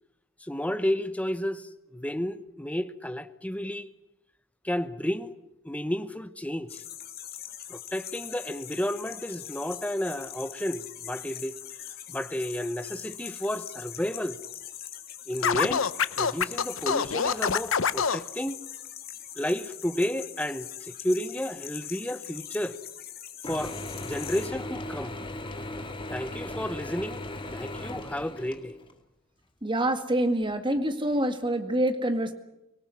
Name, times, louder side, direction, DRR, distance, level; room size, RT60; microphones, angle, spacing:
voice 1, 0.4-3.9 4.6-5.3 5.6-6.8 7.7-11.6 12.1-14.4 15.3-15.9 16.2-18.6 19.4-22.8 23.4-23.8 24.0-25.2 26.1-27.3 27.5-28.8, equal, 5° left, 1.0 m, -32 dB
sound 1, 6.7-24.5, left 11 dB, 50° left, 2.4 m, -42 dB
Scratching (performance technique), 15.4-18.2, left 6 dB, 80° left, 0.8 m, -25 dB
Mechanisms / Drill, 23.4-28.9, left 1 dB, 25° left, 2.0 m, -37 dB
voice 2, 29.6-32.3, right 1 dB, 25° right, 1.9 m, -26 dB
25.0 x 18.5 x 9.7 m
head